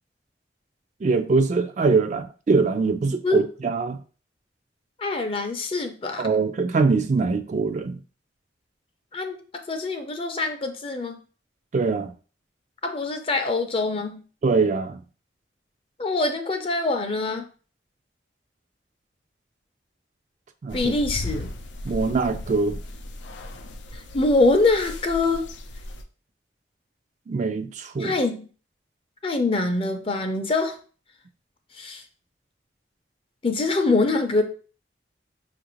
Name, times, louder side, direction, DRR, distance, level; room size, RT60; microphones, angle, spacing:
voice 1, 1.0-4.0 6.2-8.0 11.7-12.1 14.4-15.0 20.6-20.9 21.8-22.8 27.3-28.1, right 4 dB, 40° right, 0.3 m, -23 dB
voice 2, 5.0-6.3 9.1-9.4 9.7-11.2 12.8-14.2 16.0-17.5 20.7-21.5 23.9-25.5 28.0-28.5 29.2-30.8 31.7-32.0 33.4-34.4, left 3 dB, 30° left, 0.5 m, -24 dB
sound 1, 20.7-26.0, left 1 dB, 90° left, 0.5 m, -36 dB
5.5 x 2.5 x 3.0 m
head